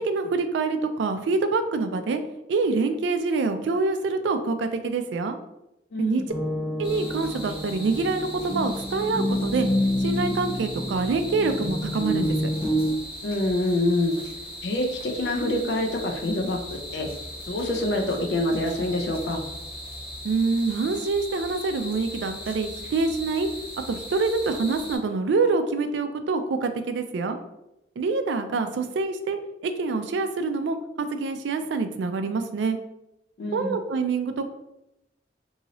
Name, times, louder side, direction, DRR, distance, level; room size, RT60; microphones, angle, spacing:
voice 1, 0.0-2.2 2.5-5.4 6.0-6.2 6.8-9.7 10.0-12.4 20.2-23.5 23.9-27.4 28.0-32.8 33.5-34.5, right 4 dB, 80° right, 8 dB, 0.3 m, -26 dB
voice 2, 5.9-6.3 13.2-14.2 14.6-16.6 16.9-17.1 17.5-19.4 33.4-33.8, left 1 dB, 65° left, 2 dB, 0.4 m, -26 dB
sound 1, 6.3-12.9, equal, 30° left, 0.7 m, -28 dB
sound 2, 6.8-25.0, equal, 5° right, 1.3 m, -39 dB
2.7 x 2.7 x 2.9 m, 0.88 s
head